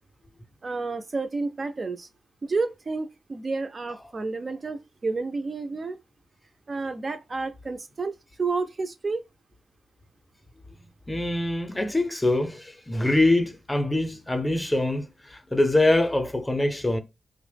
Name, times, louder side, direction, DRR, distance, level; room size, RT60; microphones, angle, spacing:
voice 1, 0.6-2.1 2.4-6.0 6.7-9.2, right 3 dB, 40° right, 0.3 m, -30 dB
voice 2, 11.1-15.1 15.5-17.0, left 2 dB, 15° left, 0.5 m, -23 dB
2.9 x 2.0 x 3.2 m
cardioid pair, 75°, 0 cm